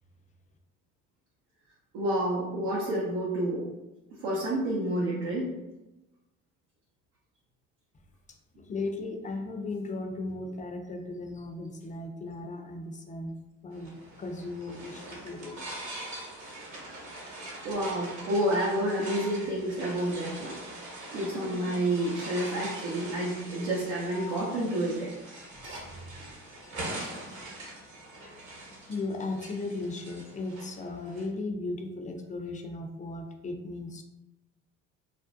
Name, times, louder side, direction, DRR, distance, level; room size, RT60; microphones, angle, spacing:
voice 1, 1.9-3.7 4.2-5.5 17.6-20.5 21.1-25.1 25.6-25.8 27.0-27.1, right 1 dB, 85° right, -6 dB, 0.6 m, -29 dB
voice 2, 8.6-13.3 13.6-15.6 25.6-25.7 26.2-26.3 27.4-27.6 28.9-34.0, left 2 dB, 20° left, 4 dB, 0.4 m, -36 dB
sound 1, 13.7-31.2, right 1 dB, 50° right, 0.9 m, -42 dB
2.5 x 2.0 x 2.5 m, 1.0 s
hypercardioid pair, 60°, 37 cm